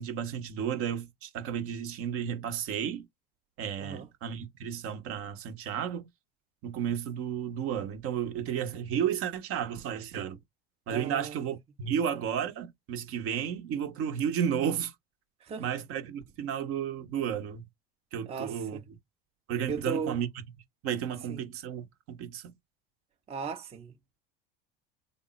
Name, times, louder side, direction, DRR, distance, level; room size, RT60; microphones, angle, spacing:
voice 1, 0.0-3.1 3.6-6.0 6.6-10.4 10.9-14.9 15.6-17.6 18.1-18.8 19.5-20.3 20.8-22.5, right 8 dB, 50° right, 0.9 m, -32 dB
voice 2, 10.9-11.4 15.4-15.7 18.3-18.8 19.7-20.2 21.3-21.4 23.3-23.9, right 6 dB, 20° right, 0.7 m, -36 dB
3.6 x 2.1 x 4.0 m
hypercardioid pair, 80°, 30 cm